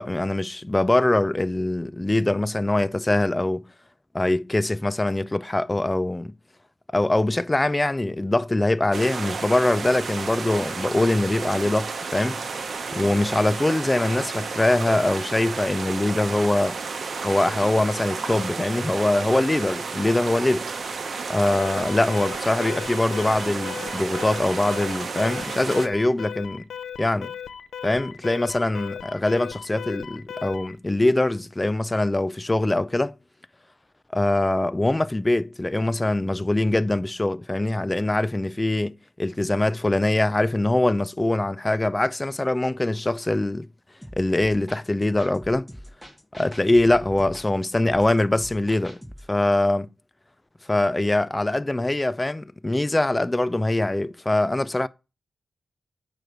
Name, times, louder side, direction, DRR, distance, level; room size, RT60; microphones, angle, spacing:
voice 1, 0.0-3.6 4.1-6.3 6.9-12.4 12.9-16.8 17.2-20.7 21.3-26.6 27.0-27.3 27.8-33.1 34.1-43.7 44.2-45.7 46.4-49.0 49.3-49.9 50.7-54.9, left 2 dB, 20° left, 0.4 m, -23 dB
sound 1, 8.9-25.9, right 4 dB, 60° right, 0.9 m, -32 dB
Alarm, 21.6-30.8, left 8 dB, 90° left, 0.5 m, -37 dB
sound 2, 44.0-49.3, equal, ahead, 1.6 m, -43 dB
9.0 x 3.1 x 6.5 m
cardioid pair, 75°, 0 cm